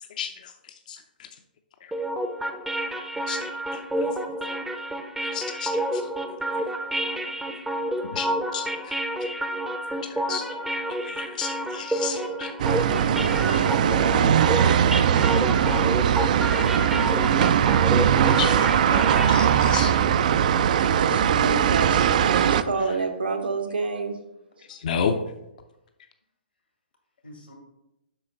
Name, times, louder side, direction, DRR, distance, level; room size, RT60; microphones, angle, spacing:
voice 1, 0.2-0.5 0.9-1.0 3.3-3.4 3.7-3.8 5.3-6.0 6.5-6.6 8.1-9.4 10.0-10.4 10.9-12.5 18.2-20.4 22.4-22.5 24.7-25.2, left 7 dB, 50° left, 6 dB, 0.6 m, -32 dB
sound 1, 1.9-19.8, right 1 dB, 5° right, 0.6 m, -30 dB
sound 2, 12.6-22.6, right 9 dB, 50° right, 0.3 m, -20 dB
voice 2, 13.0-14.3 27.2-27.5, left 1 dB, 85° left, 1 dB, 2.4 m, -40 dB
voice 3, 15.1-15.4 20.7-24.2, right 4 dB, 75° right, 5 dB, 1.1 m, -29 dB
7.7 x 5.6 x 3.9 m, 0.90 s
figure-of-eight pair, 125°, 5 cm